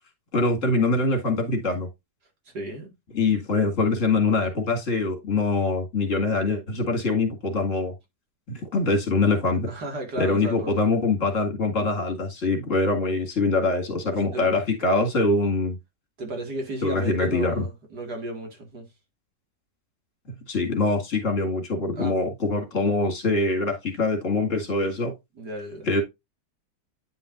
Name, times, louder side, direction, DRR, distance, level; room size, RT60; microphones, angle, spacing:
voice 1, 0.3-1.9 3.1-7.9 8.5-9.7 10.2-15.8 16.8-17.5 20.5-25.1 25.9-26.0, left 3 dB, 45° left, 2.4 m, -24 dB
voice 2, 2.5-2.9 9.6-10.8 14.1-14.5 16.2-18.9 21.9-22.2 25.3-25.9, right 1 dB, 65° right, 2.8 m, -34 dB
9.6 x 5.5 x 2.6 m
omnidirectional pair, 1.9 m